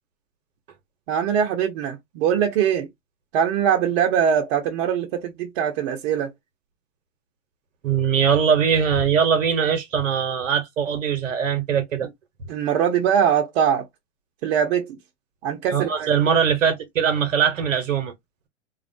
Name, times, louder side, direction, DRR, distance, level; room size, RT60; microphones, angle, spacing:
voice 1, 1.1-2.9 3.3-6.3 12.5-13.9 14.4-15.0 15.4-16.1, right 8 dB, 60° right, 0.7 m, -22 dB
voice 2, 7.8-12.1 15.7-18.1, right 7 dB, 90° right, 0.8 m, -21 dB
2.4 x 2.2 x 2.5 m
hypercardioid pair, 110°, 38 cm